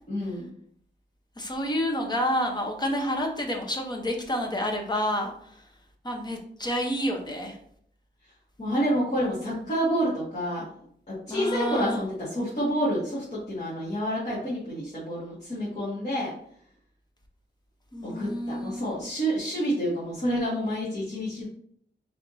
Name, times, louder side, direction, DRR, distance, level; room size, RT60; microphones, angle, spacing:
voice 1, 0.1-0.5 8.6-10.7 11.1-16.3 18.0-21.5, equal, 35° left, -9 dB, 1.6 m, -28 dB
voice 2, 1.4-5.7 6.0-7.6 9.2-9.6 11.3-12.0 17.9-19.0, equal, 20° left, 2 dB, 0.7 m, -29 dB
4.6 x 3.5 x 2.6 m, 0.65 s
wide cardioid pair, 135°, 19 cm